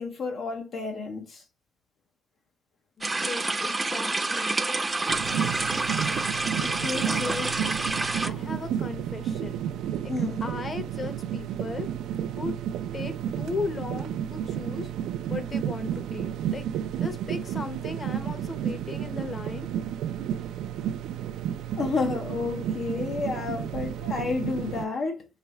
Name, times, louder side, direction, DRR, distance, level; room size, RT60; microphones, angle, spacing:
voice 1, 0.0-1.4 6.6-7.6 10.1-10.5 21.8-25.3, left 4 dB, 65° left, 0.6 m, -31 dB
voice 2, 3.0-4.6 7.1-7.2 8.2-9.6 10.0-10.1 10.4-11.9 12.4-12.5 12.9-14.9 15.3-16.7 17.0-19.7, left 3 dB, 35° left, 0.9 m, -36 dB
sound 1, 3.0-8.3, right 2 dB, 20° right, 0.5 m, -28 dB
sound 2, 5.1-24.9, right 10 dB, 85° right, 0.3 m, -32 dB
4.6 x 3.2 x 2.9 m
cardioid pair, 90°, 0 cm